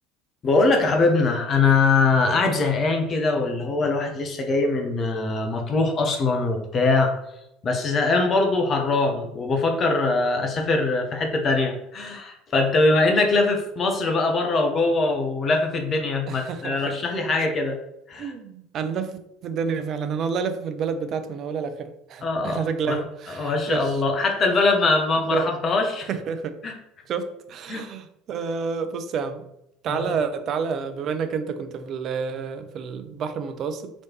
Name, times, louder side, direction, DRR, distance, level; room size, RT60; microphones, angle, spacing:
voice 1, 0.4-7.1 7.6-17.8 18.1-18.3 22.2-22.6 22.9-23.0 23.4-26.1 26.6-26.7 27.7-27.8 29.9-30.1, left 3 dB, 35° left, 3 dB, 0.7 m, -22 dB
voice 2, 16.3-17.0 18.2-24.0 25.3-25.5 26.1-26.6 27.1-29.4 29.8-33.9, right 6 dB, 45° right, 9 dB, 0.4 m, -29 dB
4.1 x 3.1 x 2.9 m, 0.83 s
figure-of-eight pair, 65°, 0 cm